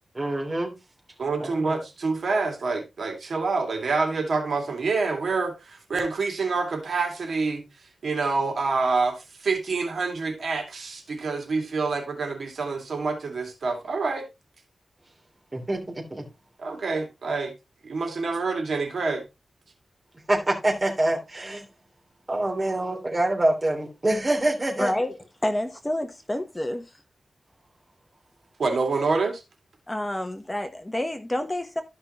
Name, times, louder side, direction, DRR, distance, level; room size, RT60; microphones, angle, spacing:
voice 1, 0.1-0.7 1.4-1.7 15.5-16.2 20.3-21.7 22.3-24.9, right 1 dB, 30° right, 3.1 m, -25 dB
voice 2, 1.2-7.6 8.0-9.1 9.4-14.3 16.6-17.5 17.8-19.2 28.6-29.4, right 4 dB, 75° right, 2.5 m, -27 dB
voice 3, 24.8-25.1 25.4-26.9 29.9-31.8, left 1 dB, 15° left, 1.0 m, -28 dB
13.0 x 5.5 x 2.9 m
wide cardioid pair, 85°, 0 cm